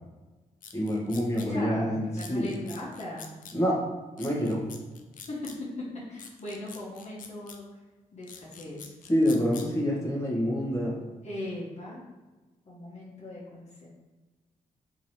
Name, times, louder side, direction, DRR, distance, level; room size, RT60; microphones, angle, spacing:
sound 1, 0.6-1.5 2.2-3.6 4.2-5.6 6.2-7.6 8.2-9.7, left 6 dB, 65° left, 0.5 m, -46 dB
voice 1, 0.7-2.5 3.5-3.8 4.2-4.6 9.1-11.0, equal, 20° left, -4 dB, 1.2 m, -27 dB
voice 2, 1.3-3.3 5.3-7.8 8.1-8.9 11.2-12.0 12.7-13.9, left 1 dB, 50° left, -5 dB, 1.1 m, -39 dB
3.8 x 2.8 x 3.1 m, 1.2 s
cardioid pair, 65°, 15 cm